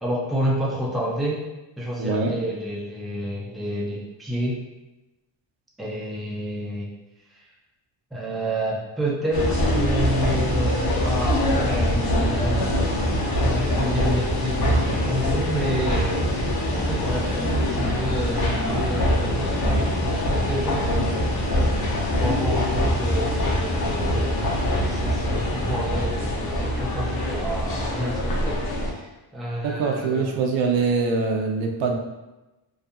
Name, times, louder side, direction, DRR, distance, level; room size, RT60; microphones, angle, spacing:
voice 1, 0.0-1.4 1.8-4.6 5.8-6.9 7.3-7.5 8.1-12.9 13.3-16.2 16.7-21.6 22.2-24.4 24.9-30.4, equal, ahead, -4 dB, 0.4 m, -29 dB
voice 2, 2.0-2.3 29.6-32.0, right 4 dB, 75° right, 3 dB, 0.5 m, -23 dB
sound 1, 9.3-28.9, equal, 50° left, 0.7 m, -23 dB
2.6 x 2.4 x 2.2 m, 1.0 s
cardioid pair, 100°, 46 cm